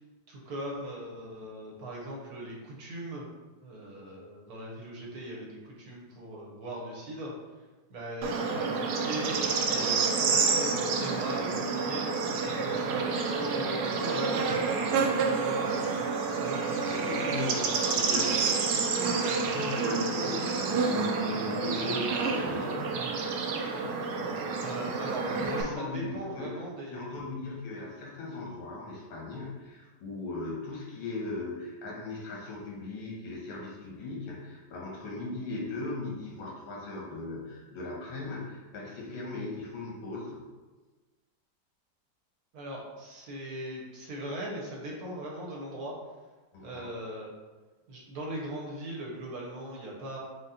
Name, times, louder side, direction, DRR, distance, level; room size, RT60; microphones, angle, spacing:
voice 1, 0.3-3.2 3.6-7.3 7.9-9.4 9.7-12.1 12.6-16.1 16.4-17.4 24.6-25.2 25.6-27.3 42.5-45.9 46.6-47.3 47.9-50.2, right 1 dB, 60° right, -3 dB, 1.1 m, -39 dB
Bird / Insect, 8.2-25.6, right 4 dB, 75° right, 0.9 m, -29 dB
voice 2, 16.9-22.9 25.2-40.4 46.5-46.9, left 3 dB, 85° left, -3 dB, 1.9 m, -38 dB
5.0 x 2.0 x 4.1 m, 1.3 s
omnidirectional pair, 2.2 m